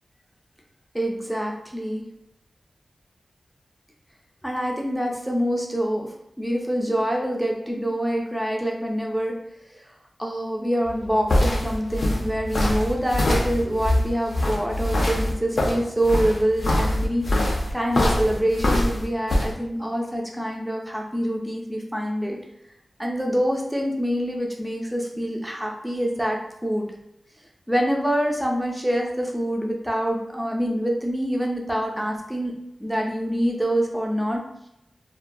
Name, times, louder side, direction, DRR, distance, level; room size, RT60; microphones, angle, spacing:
voice 1, 0.9-2.0 4.4-6.1 6.4-9.3 9.7-9.8 10.2-22.4 23.0-26.9 27.7-32.5 32.8-34.4, equal, 5° right, 0 dB, 0.4 m, -25 dB
sound 1, 10.8-19.5, left 1 dB, 60° left, 0.4 m, -23 dB
2.2 x 2.2 x 2.5 m, 0.83 s
wide cardioid pair, 120°, 0 cm